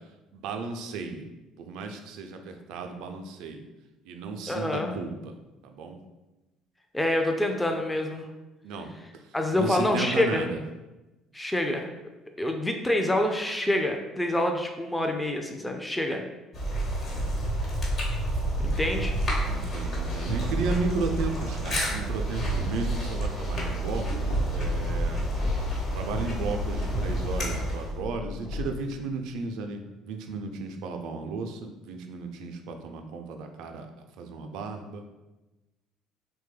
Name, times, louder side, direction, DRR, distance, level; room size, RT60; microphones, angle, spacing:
voice 1, 0.3-1.3 1.6-3.6 4.0-5.4 5.6-6.0 8.6-10.6 17.0-17.4 18.5-18.8 19.5-25.3 25.9-35.0, right 4 dB, 65° right, 5 dB, 0.3 m, -34 dB
voice 2, 4.5-4.9 6.9-8.3 9.3-10.4 11.3-11.9 12.4-16.2 18.6-19.1, left 1 dB, 10° left, 3 dB, 0.4 m, -26 dB
sound 1, 16.5-28.0, right 1 dB, 50° left, 1.1 m, -29 dB
sound 2, 24.2-25.8 26.1-28.9, left 2 dB, 70° left, 0.7 m, -33 dB
3.0 x 2.2 x 3.2 m, 1.1 s
hypercardioid pair, 60°, 0 cm